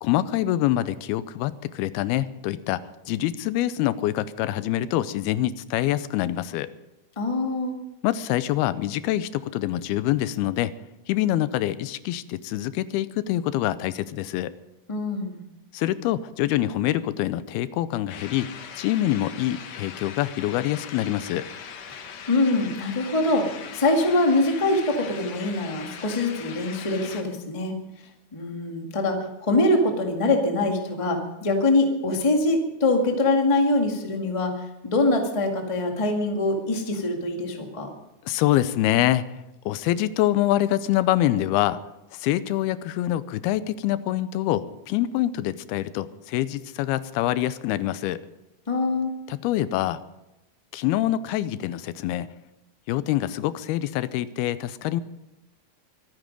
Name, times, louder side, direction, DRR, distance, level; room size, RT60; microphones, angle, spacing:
voice 1, 0.0-6.7 8.0-10.7 11.1-14.5 15.7-18.5 18.8-21.5 38.3-39.4 39.7-41.8 42.1-48.2 49.3-50.0 50.7-52.3 52.9-55.0, left 13 dB, 90° left, 15 dB, 2.6 m, -25 dB
voice 2, 7.1-7.7 14.9-15.4 21.9-22.0 22.3-27.7 28.3-37.9 48.7-49.1, left 2 dB, 25° left, 2 dB, 0.6 m, -24 dB
sound 1, 18.1-27.2, left 7 dB, 60° left, 1.8 m, -40 dB
23.5 x 9.7 x 5.3 m, 0.92 s
omnidirectional pair, 4.4 m